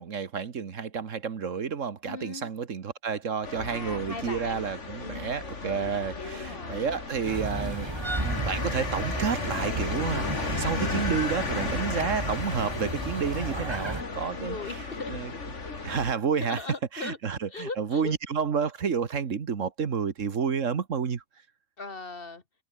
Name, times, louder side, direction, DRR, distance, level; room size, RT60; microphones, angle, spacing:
voice 1, 0.0-14.6 15.1-15.3 15.8-16.6 16.9-21.2, right 6 dB, 65° right, 1.7 m, -30 dB
voice 2, 2.1-2.5 3.7-4.7 5.0-5.3 6.2-6.9 10.7-10.9 14.4-15.2 16.4-17.2 17.5-18.1 21.8-22.4, left 3 dB, 45° left, 2.0 m, -38 dB
sound 1, 3.4-16.1, left 3 dB, 60° left, 3.0 m, -35 dB
sound 2, 7.2-14.0, right 2 dB, 20° right, 1.8 m, -34 dB
omnidirectional pair, 1.4 m